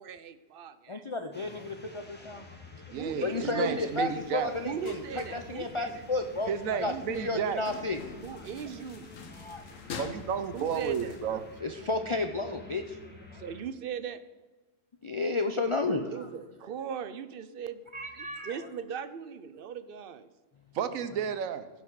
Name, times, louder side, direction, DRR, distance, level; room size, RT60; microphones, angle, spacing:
voice 1, 0.0-1.0 3.0-3.9 4.6-5.9 6.9-7.3 8.2-9.1 10.5-11.5 13.3-14.2 15.9-17.8 18.1-20.3, right 7 dB, 55° right, 13 dB, 0.7 m, -39 dB
voice 2, 0.9-2.5 2.7-2.9 3.2-6.5 6.8-6.9 7.2-8.0 8.3-8.4 9.3-9.6 11.6-13.4 15.0-16.3 17.9-18.6, left 3 dB, 50° left, 5 dB, 0.3 m, -32 dB
sound 1, 1.3-13.6, left 2 dB, 10° left, 1.2 m, -50 dB
voice 3, 2.9-4.5 6.5-7.6 9.9-11.4 20.7-21.7, right 7 dB, 90° right, 12 dB, 1.2 m, -32 dB
sound 2, 3.7-11.6, left 5 dB, 75° left, 1.3 m, -47 dB
15.5 x 5.7 x 4.7 m, 1.2 s
omnidirectional pair, 1.4 m